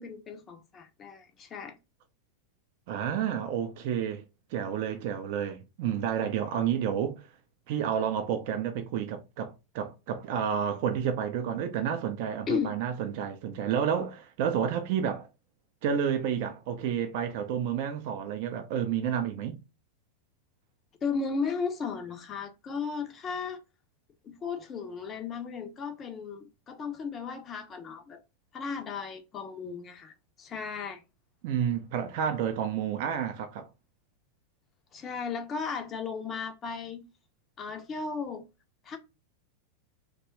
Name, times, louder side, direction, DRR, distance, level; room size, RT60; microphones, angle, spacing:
voice 1, 0.0-1.8 12.5-12.8 21.0-23.6 24.2-28.2 28.5-31.0 34.9-37.0 37.6-38.4 38.9-39.0, left 5 dB, 25° left, 0.5 m, -35 dB
voice 2, 2.9-4.2 4.5-7.3 7.7-15.3 15.8-19.6 31.4-33.7, right 8 dB, 50° right, 0.4 m, -30 dB
2.9 x 2.2 x 2.9 m
figure-of-eight pair, 90°, 0 cm